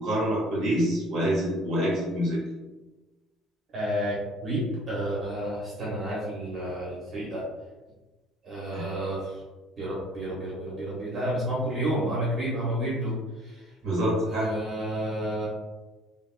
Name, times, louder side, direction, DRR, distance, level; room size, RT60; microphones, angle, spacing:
voice 1, 0.0-2.4 8.7-8.8 13.8-14.5, equal, 65° right, -6 dB, 1.4 m, -26 dB
voice 2, 3.7-4.2 4.4-7.4 8.4-9.4 9.8-13.1 13.4-13.6 14.2-15.5, right 1 dB, 30° right, -7 dB, 1.0 m, -30 dB
3.4 x 2.4 x 2.2 m, 1.2 s
cardioid pair, 130°, 0 cm